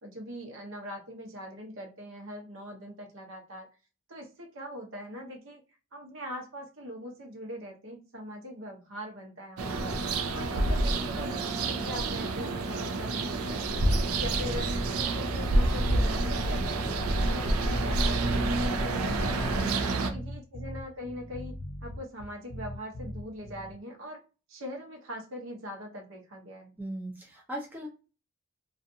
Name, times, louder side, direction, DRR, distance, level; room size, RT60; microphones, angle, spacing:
voice 1, 0.0-3.7 4.1-5.6 5.9-9.9 10.3-13.7 14.2-17.0 17.3-19.5 20.0-24.2 24.5-26.7, equal, 65° right, 1 dB, 0.8 m, -41 dB
sound 1, 9.6-20.1, right 2 dB, 90° right, 0.5 m, -28 dB
sound 2, 14.1-23.7, equal, 80° left, 0.6 m, -40 dB
voice 2, 19.6-20.2 26.8-27.9, right 2 dB, 10° right, -2 dB, 0.4 m, -37 dB
2.5 x 2.4 x 2.6 m, 0.33 s
head